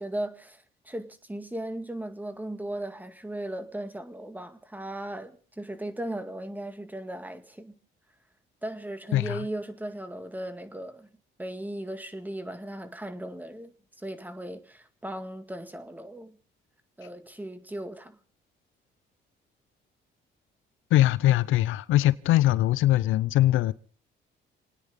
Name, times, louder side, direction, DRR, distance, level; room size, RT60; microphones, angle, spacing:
voice 1, 0.0-7.8 8.6-11.1 11.4-16.4 17.0-18.2, right 1 dB, 10° right, 2.1 m, -37 dB
voice 2, 9.1-9.5 20.9-23.7, left 14 dB, 85° left, 0.7 m, -22 dB
28.0 x 9.9 x 5.2 m
cardioid pair, 90°, 20 cm